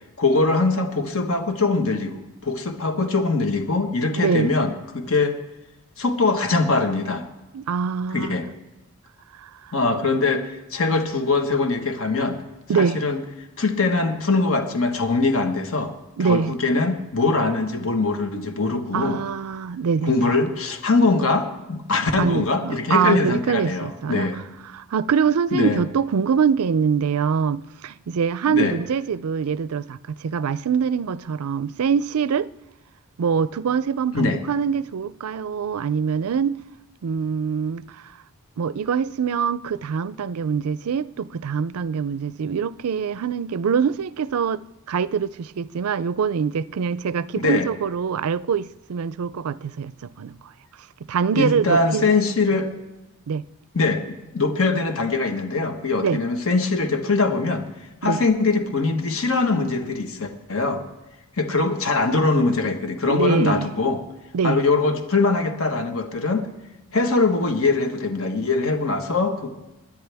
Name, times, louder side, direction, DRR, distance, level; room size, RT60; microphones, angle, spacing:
voice 1, 0.2-5.4 6.0-7.2 8.1-8.5 9.7-12.4 12.7-13.2 13.6-15.9 16.2-19.2 20.0-24.4 25.5-25.8 28.5-28.7 34.1-34.4 47.3-47.7 51.3-52.7 53.7-57.7 58.0-60.8 61.4-64.0 64.4-66.5 66.9-69.5, left 3 dB, 65° left, 1.3 m, -22 dB
voice 2, 4.2-4.6 7.5-8.4 9.4-9.7 12.7-13.0 16.2-16.5 18.9-20.3 22.1-24.4 24.7-32.5 33.2-36.6 37.0-38.1 38.6-50.5 51.1-52.1 53.3-53.5 56.0-56.2 58.0-58.2 63.1-63.7 64.3-64.6, right 6 dB, 80° right, 0.4 m, -24 dB
21.5 x 10.0 x 3.5 m
head